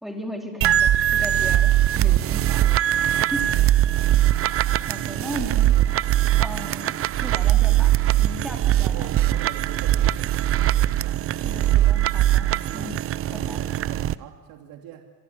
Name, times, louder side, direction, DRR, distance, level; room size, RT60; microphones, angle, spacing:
voice 1, 0.0-2.7 3.3-3.5 4.9-5.9 6.4-9.1 11.4-12.9 13.3-13.6, equal, ahead, 2 dB, 4.3 m, -36 dB
sound 1, 0.6-14.1, right 13 dB, 35° right, 0.7 m, -21 dB
voice 2, 8.4-11.3 12.6-13.0 13.3-15.1, right 10 dB, 60° right, 4 dB, 2.9 m, -43 dB
27.0 x 22.5 x 8.3 m, 1.3 s
cardioid pair, 130°, 40 cm